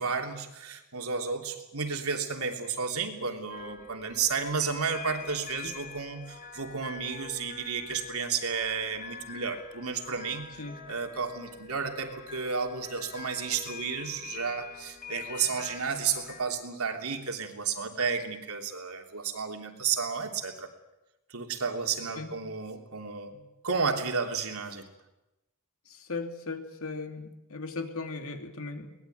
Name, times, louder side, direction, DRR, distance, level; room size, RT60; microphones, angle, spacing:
voice 1, 0.0-10.5 10.9-20.7 21.3-24.9, right 5 dB, 80° right, 3 dB, 3.2 m, -32 dB
sound 1, 3.5-16.4, left 5 dB, 40° left, 4.1 m, -45 dB
voice 2, 25.9-29.0, left 3 dB, 70° left, 5 dB, 2.7 m, -38 dB
23.0 x 19.5 x 9.4 m, 0.97 s
head